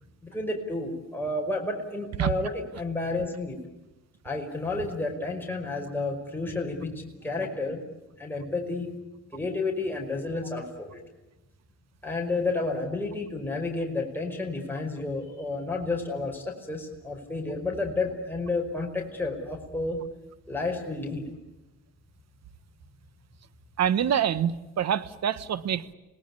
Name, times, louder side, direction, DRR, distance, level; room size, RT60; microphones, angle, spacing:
voice 1, 0.2-3.6 4.2-7.9 8.2-8.9 9.3-11.0 12.0-20.0 20.5-21.2, left 3 dB, 5° left, 0 dB, 5.2 m, -31 dB
voice 2, 23.8-25.9, right 9 dB, 60° right, 16 dB, 1.3 m, -26 dB
27.0 x 19.0 x 9.9 m, 1.1 s
cardioid pair, 90°, 30 cm